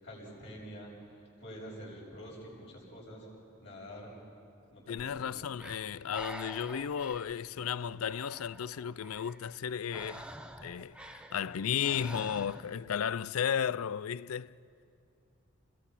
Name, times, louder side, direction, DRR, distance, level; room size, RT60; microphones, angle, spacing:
voice 1, 0.0-0.9 1.4-3.3 3.6-4.1 4.7-5.3, equal, 55° left, 7.6 m, -47 dB
voice 2, 4.9-10.3 10.6-14.5, left 8 dB, 90° left, 0.4 m, -34 dB
Breathing, 5.0-12.8, right 1 dB, 5° right, 0.8 m, -48 dB
30.0 x 21.5 x 5.8 m
head